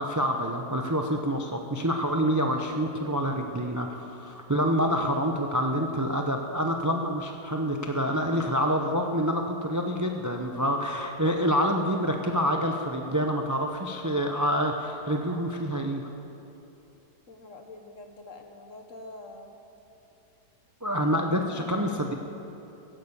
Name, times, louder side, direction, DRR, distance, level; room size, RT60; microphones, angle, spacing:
voice 1, 0.0-16.1 20.8-22.1, equal, 25° right, 3 dB, 0.4 m, -27 dB
voice 2, 17.3-19.6 21.0-21.2 21.6-22.0, left 2 dB, 50° left, 4 dB, 1.5 m, -45 dB
16.5 x 11.0 x 7.1 m, 2.9 s
omnidirectional pair, 1.7 m